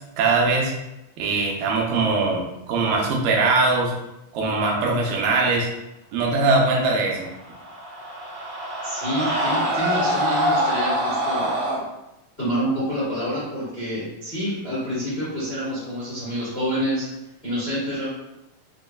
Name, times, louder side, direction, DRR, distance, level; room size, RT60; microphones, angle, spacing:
voice 1, 0.2-0.7 1.2-3.9 4.3-5.7 6.1-7.3, right 3 dB, 85° right, -1 dB, 2.4 m, -21 dB
Screaming, 7.3-11.8, equal, 65° right, 2.1 m, -24 dB
voice 2, 8.8-11.5 12.4-17.1 17.4-18.1, equal, 85° left, -11 dB, 0.5 m, -27 dB
6.1 x 2.2 x 2.3 m, 0.92 s
omnidirectional pair, 3.8 m